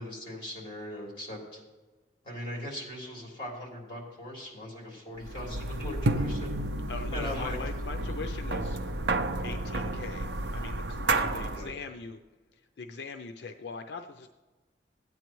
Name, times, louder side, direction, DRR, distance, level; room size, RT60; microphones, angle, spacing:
voice 1, 0.0-1.6 2.2-6.6 7.1-7.6 11.5-11.7, left 1 dB, 30° left, -3 dB, 3.5 m, -39 dB
sound 1, 5.2-11.7, right 2 dB, 70° right, 0.6 m, -31 dB
voice 2, 6.9-8.8 9.4-12.2 12.5-14.3, left 4 dB, 70° left, 6 dB, 0.5 m, -41 dB
15.5 x 9.3 x 3.0 m, 1.3 s
head